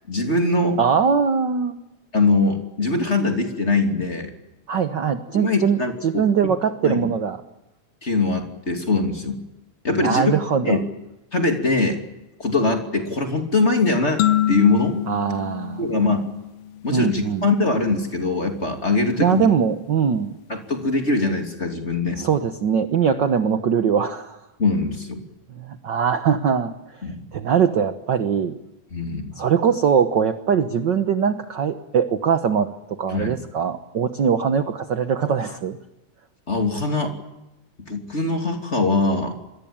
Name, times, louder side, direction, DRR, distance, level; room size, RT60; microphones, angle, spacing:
voice 1, 0.1-0.8 2.1-4.3 5.3-6.2 6.8-7.1 8.0-9.4 9.8-10.3 10.6-10.8 11.3-12.0 12.4-14.2 14.5-15.0 15.8-16.3 16.8-19.5 20.5-22.2 24.6-25.2 27.0-27.2 28.9-29.3 33.1-33.3 36.5-37.1 37.8-39.3, left 3 dB, 20° left, 4 dB, 2.9 m, -22 dB
voice 2, 0.8-1.8 4.7-7.4 10.0-10.8 15.1-15.8 16.9-17.5 19.2-20.4 22.2-24.4 25.5-28.6 29.3-35.8, right 7 dB, 55° right, 9 dB, 1.3 m, -21 dB
sound 1, 14.2-16.8, left 12 dB, 65° left, 2.1 m, -25 dB
27.5 x 22.5 x 8.9 m, 0.96 s
omnidirectional pair, 3.4 m